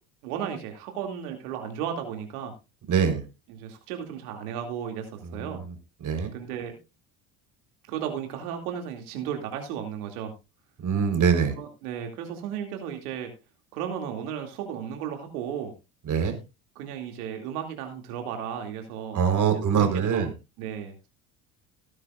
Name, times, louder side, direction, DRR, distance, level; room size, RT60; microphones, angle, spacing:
voice 1, 0.2-2.5 3.5-5.6 6.3-6.8 7.9-10.3 11.6-13.3 13.7-15.7 16.2-16.3 16.8-20.3 20.6-21.1, right 8 dB, 85° right, 4 dB, 2.6 m, -34 dB
voice 2, 2.9-3.2 5.5-5.6 6.0-6.3 10.8-11.5 16.1-16.3 19.1-20.3, right 7 dB, 45° right, 7 dB, 4.1 m, -23 dB
17.5 x 9.9 x 2.5 m, 0.26 s
supercardioid pair, 90°, 43 cm